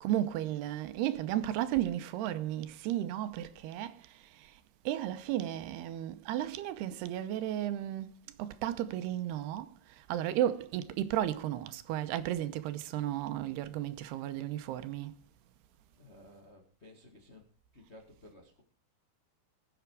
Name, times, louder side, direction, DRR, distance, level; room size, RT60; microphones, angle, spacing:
voice 1, 0.0-3.9 4.9-8.1 8.4-9.7 10.1-15.1, right 12 dB, 85° right, 2.8 m, -33 dB
voice 2, 15.9-17.5 17.7-18.6, left 1 dB, 50° left, 0.7 m, -55 dB
20.5 x 8.1 x 4.7 m
omnidirectional pair, 4.7 m